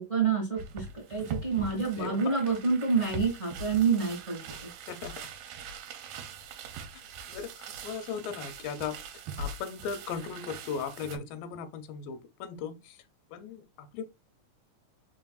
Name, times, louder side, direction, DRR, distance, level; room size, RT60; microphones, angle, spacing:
voice 1, 0.0-4.7, right 5 dB, 30° right, 1.2 m, -28 dB
sound 1, 0.6-11.2, right 4 dB, 80° right, 2.1 m, -42 dB
voice 2, 2.0-2.4 4.9-5.2 6.9-7.0 7.3-9.0 9.4-13.0 13.3-14.0, left 6 dB, 85° left, 2.2 m, -37 dB
4.6 x 4.0 x 2.3 m
omnidirectional pair, 4.0 m